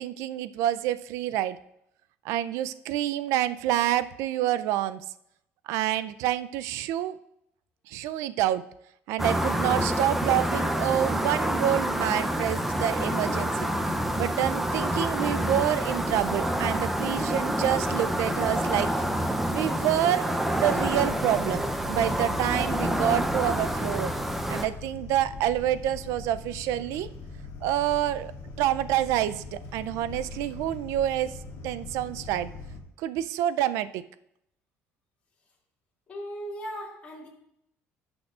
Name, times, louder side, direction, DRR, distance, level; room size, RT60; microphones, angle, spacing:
voice 1, 0.0-1.6 2.2-5.0 5.7-7.2 7.9-8.6 9.1-13.6 14.2-18.9 19.5-24.1 24.5-27.1 27.6-28.3 28.6-31.3 31.6-32.5 33.0-34.0, right 12 dB, 85° right, 14 dB, 0.4 m, -27 dB
sound 1, 9.2-24.7, right 1 dB, 5° right, 0.5 m, -27 dB
sound 2, 20.7-32.8, left 3 dB, 75° left, 1.7 m, -42 dB
voice 2, 36.1-37.3, equal, 25° left, -4 dB, 2.4 m, -37 dB
17.0 x 6.2 x 2.4 m, 0.78 s
cardioid pair, 160°, 5 cm